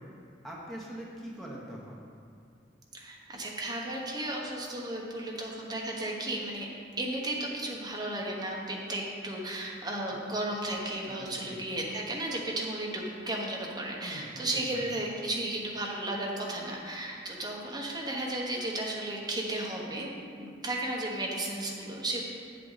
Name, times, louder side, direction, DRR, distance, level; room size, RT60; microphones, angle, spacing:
voice 1, 0.4-2.0 10.1-10.2 11.0-11.6 14.0-14.9, equal, ahead, -4 dB, 1.0 m, -43 dB
voice 2, 2.9-6.7 7.0-20.1 20.4-22.2, right 1 dB, 25° right, -2 dB, 1.1 m, -34 dB
7.8 x 7.8 x 4.0 m, 2.3 s
head